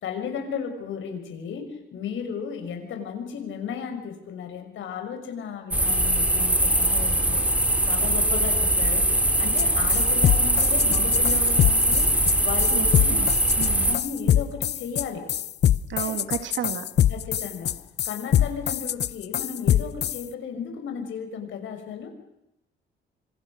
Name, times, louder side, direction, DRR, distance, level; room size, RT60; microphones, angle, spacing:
voice 1, 0.0-7.5 7.9-9.1 9.4-12.1 12.4-13.3 13.8-15.3 16.0-16.1 17.1-17.7 18.0-22.1, left 6 dB, 75° left, 5 dB, 5.8 m, -34 dB
sound 1, 5.7-14.0, right 1 dB, 5° right, 2.7 m, -22 dB
sound 2, 9.6-9.7 9.9-20.2, left 11 dB, 60° left, 0.8 m, -23 dB
voice 2, 12.7-13.3 13.6-14.0 15.9-16.8, right 9 dB, 70° right, 9 dB, 2.9 m, -32 dB
26.0 x 23.5 x 6.5 m, 0.86 s
cardioid pair, 90°, 20 cm